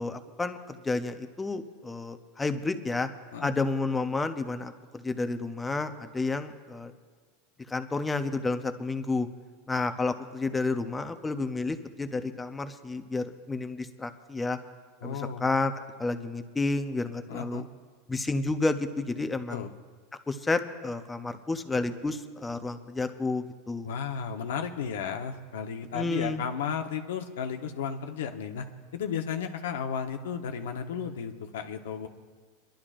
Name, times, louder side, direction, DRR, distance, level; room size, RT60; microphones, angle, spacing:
voice 1, 0.0-3.1 3.4-4.7 5.0-6.9 7.7-9.3 9.7-14.6 15.0-15.7 16.0-17.6 18.1-19.7 20.3-23.9 25.9-26.4, left 3 dB, 10° left, 9 dB, 0.6 m, -30 dB
voice 2, 15.0-15.5 17.3-17.6 19.5-19.7 23.8-28.7 28.9-32.1, left 7 dB, 90° left, 5 dB, 0.9 m, -34 dB
28.5 x 11.5 x 2.5 m, 1.5 s
supercardioid pair, 150°, 0 cm